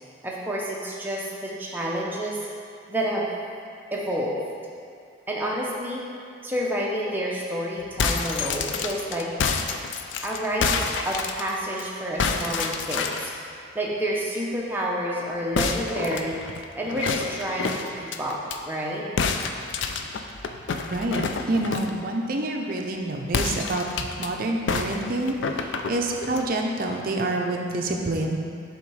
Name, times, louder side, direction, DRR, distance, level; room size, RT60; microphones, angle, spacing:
voice 1, 0.2-2.4 2.9-3.3 3.9-4.4 5.3-6.0 6.4-9.3 10.2-10.7 11.0-13.3 13.7-16.4 16.8-18.4 18.6-19.0, equal, 10° right, -4 dB, 0.7 m, -29 dB
sound 1, 7.8-11.8 12.2-13.4 15.5-18.6 19.2-22.0 23.3-24.3 24.7-26.5, left 5 dB, 65° left, 0.4 m, -28 dB
voice 2, 20.9-28.4, right 2 dB, 45° right, 2 dB, 0.5 m, -27 dB
7.2 x 3.6 x 4.7 m, 2.3 s
head